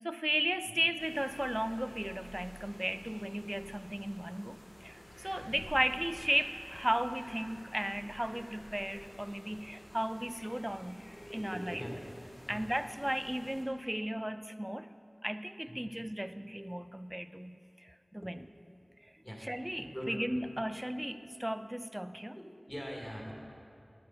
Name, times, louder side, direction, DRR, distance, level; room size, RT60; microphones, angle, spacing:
voice 1, 0.0-11.0 11.3-11.8 12.5-14.9 15.2-18.5 19.4-22.4, equal, 15° right, 12 dB, 0.3 m, -35 dB
sound 1, 1.0-13.6, equal, 60° left, 1.7 m, -52 dB
voice 2, 11.1-11.9 12.5-12.6 15.6-15.9 19.2-19.5 19.9-20.1 20.4-20.5 22.4-23.3, equal, 25° left, -2 dB, 1.9 m, -43 dB
11.0 x 6.7 x 5.6 m, 2.5 s
wide cardioid pair, 50°, 0 cm